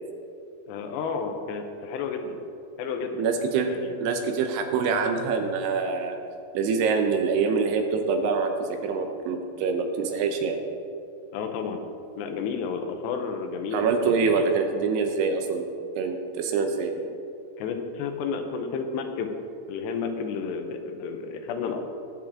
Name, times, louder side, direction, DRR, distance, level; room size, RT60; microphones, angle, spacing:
voice 1, 0.7-2.4 2.8-3.3 3.6-4.0 11.3-11.8 12.2-14.3 17.6-19.3 19.7-21.8, left 5 dB, 85° left, 5 dB, 3.1 m, -31 dB
voice 2, 3.2-3.7 4.0-6.2 6.5-10.6 13.7-15.6 16.0-16.9, right 5 dB, 80° right, 5 dB, 2.8 m, -25 dB
20.0 x 7.5 x 3.6 m, 2.5 s
omnidirectional pair, 4.9 m